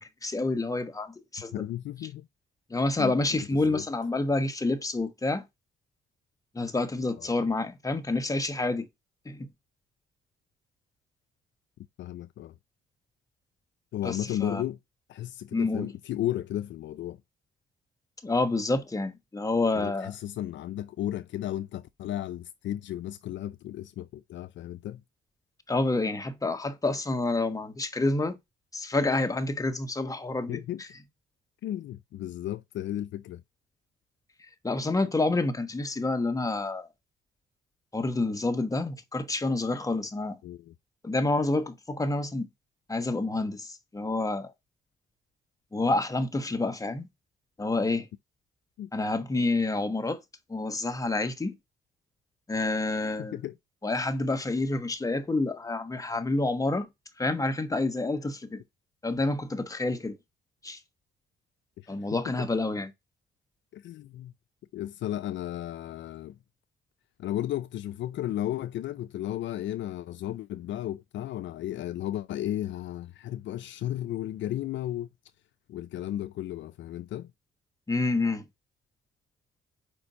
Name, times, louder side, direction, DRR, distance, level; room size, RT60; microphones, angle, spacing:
voice 1, 0.0-1.5 2.7-5.5 6.5-8.9 9.2-9.5 14.0-14.6 15.5-15.9 18.2-20.1 25.7-28.4 28.7-30.6 34.6-36.9 37.9-40.4 41.0-42.5 42.9-44.5 45.7-47.1 47.6-48.1 48.9-50.2 50.5-51.5 52.5-53.4 53.8-56.9 57.2-58.6 59.0-60.2 60.6-60.8 61.9-62.9 77.9-78.4, left 2 dB, 15° left, 1.2 m, -28 dB
voice 2, 1.5-2.3 3.0-3.8 7.2-7.3 12.0-12.5 13.9-14.8 15.1-17.2 19.8-25.0 30.5-30.8 31.6-33.4 40.4-40.7 48.8-48.9 53.2-53.6 61.8-62.3 63.7-64.3 64.7-66.4 67.2-75.1 75.7-77.3, left 12 dB, 70° left, 0.5 m, -34 dB
5.2 x 4.4 x 5.5 m
cardioid pair, 90°, 20 cm